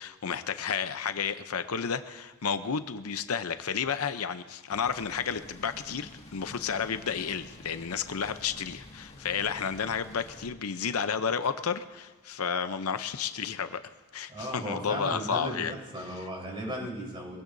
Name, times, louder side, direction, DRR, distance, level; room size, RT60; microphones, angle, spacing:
voice 1, 0.0-13.8 14.1-15.7, left 6 dB, 75° left, 11 dB, 0.7 m, -31 dB
sound 1, 4.7-10.5, left 1 dB, 30° left, 1.9 m, -49 dB
voice 2, 14.3-17.4, equal, 25° right, -1 dB, 4.3 m, -36 dB
23.5 x 16.5 x 2.7 m, 1.4 s
head